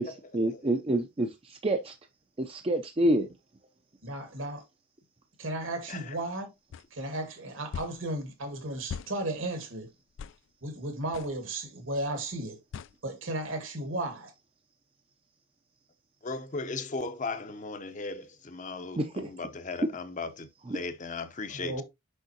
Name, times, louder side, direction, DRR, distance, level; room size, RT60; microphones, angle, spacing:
voice 1, 0.0-1.9 2.4-3.3 19.0-19.3 19.8-19.9 20.6-20.8, right 1 dB, 30° right, 0.5 m, -28 dB
voice 2, 4.0-4.6 5.4-6.5 6.9-9.9 10.6-12.6 13.0-14.3 21.5-21.8, right 1 dB, 70° right, 1.8 m, -34 dB
sound 1, 6.7-6.9 7.7-8.0 8.9-9.1 10.2-10.4 11.1-11.3 12.7-12.9, left 7 dB, 60° left, 0.3 m, -39 dB
voice 3, 16.2-21.8, left 3 dB, 35° left, 0.7 m, -37 dB
6.4 x 5.4 x 2.8 m
head